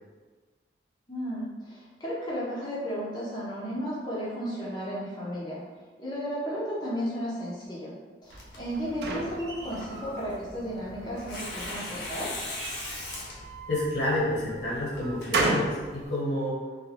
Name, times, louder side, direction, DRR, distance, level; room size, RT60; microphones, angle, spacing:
voice 1, 1.1-5.6 6.0-7.9 8.2-12.4, equal, 25° left, -8 dB, 0.5 m, -34 dB
Tearing, 8.3-16.1, left 1 dB, 65° left, 0.6 m, -41 dB
sound 1, 8.3-10.2 10.7-11.4 12.4-13.9 14.5-15.8, right 2 dB, 65° right, 0.4 m, -33 dB
voice 2, 13.7-16.6, left 1 dB, 85° left, -7 dB, 1.1 m, -29 dB
2.4 x 2.2 x 3.2 m, 1.4 s
head